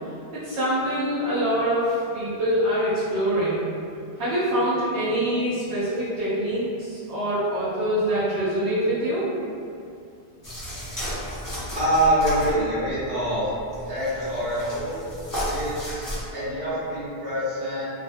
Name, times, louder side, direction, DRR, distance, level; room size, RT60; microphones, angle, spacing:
voice 1, 0.3-3.6 4.2-9.3, equal, 90° right, -12 dB, 1.0 m, -24 dB
sound 1, 10.4-16.2, equal, 20° left, 0.6 m, -33 dB
voice 2, 11.7-13.5 13.9-15.1 15.4-17.8, right 1 dB, 65° right, -12 dB, 1.4 m, -25 dB
3.0 x 2.0 x 2.6 m, 2.5 s
omnidirectional pair, 1.1 m